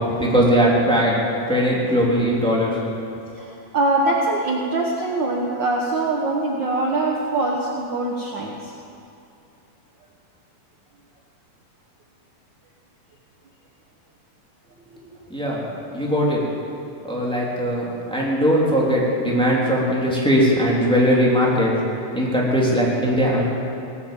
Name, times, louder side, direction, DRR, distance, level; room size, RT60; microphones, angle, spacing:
voice 1, 0.2-1.2 1.5-2.7 15.3-15.6 15.9-16.4 17.0-21.7 22.1-23.4, equal, ahead, -5 dB, 2.7 m, -19 dB
voice 2, 3.3-8.7, right 2 dB, 65° right, -2 dB, 1.1 m, -23 dB
18.0 x 10.5 x 7.6 m, 2.6 s
omnidirectional pair, 3.8 m